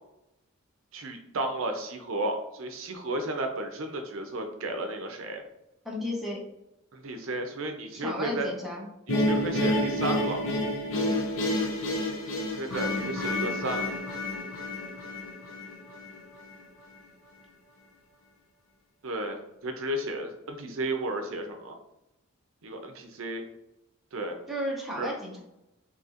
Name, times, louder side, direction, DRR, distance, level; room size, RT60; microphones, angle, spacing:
voice 1, 0.9-5.4 6.9-8.5 9.2-10.4 12.6-13.9 19.0-21.8 22.6-23.4 24.1-24.3 24.9-25.1, right 1 dB, 65° right, 4 dB, 0.5 m, -33 dB
voice 2, 5.8-6.4 7.9-8.9 24.5-25.4, left 1 dB, ahead, -4 dB, 0.6 m, -33 dB
sound 1, 9.1-16.2, left 1 dB, 65° left, 0.7 m, -29 dB
4.1 x 2.9 x 2.4 m, 0.90 s
head